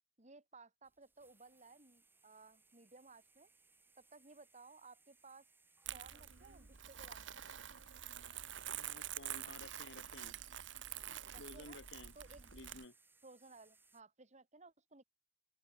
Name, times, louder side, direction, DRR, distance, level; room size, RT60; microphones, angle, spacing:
voice 1, 0.2-3.5 4.0-5.4 5.9-7.4 11.3-11.8 12.1-12.5 13.2-15.0, right 3 dB, 40° right, 2.7 m, -59 dB
sound 1, 0.8-14.0, right 3 dB, 10° right, 1.8 m, -70 dB
Crumpling crinkling, 5.8-12.8, right 11 dB, 85° right, 1.2 m, -47 dB
voice 2, 8.7-10.3 11.4-12.1 12.5-13.0, left 2 dB, 75° left, 1.9 m, -54 dB
open air
head